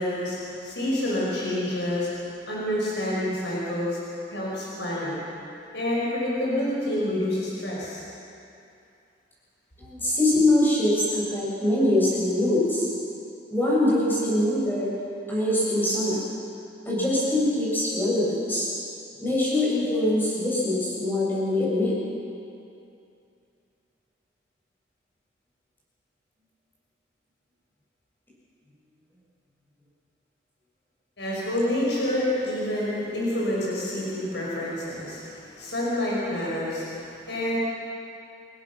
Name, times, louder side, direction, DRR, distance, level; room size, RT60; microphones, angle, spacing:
voice 1, 0.0-4.0 4.3-5.2 5.7-8.0 31.2-37.5, left 1 dB, 70° left, -6 dB, 5.9 m, -28 dB
voice 2, 9.8-12.9 13.5-14.9 15.3-16.3 16.9-18.7 19.2-21.9, left 1 dB, 10° left, -7 dB, 7.2 m, -23 dB
28.5 x 17.5 x 6.2 m, 2.6 s
head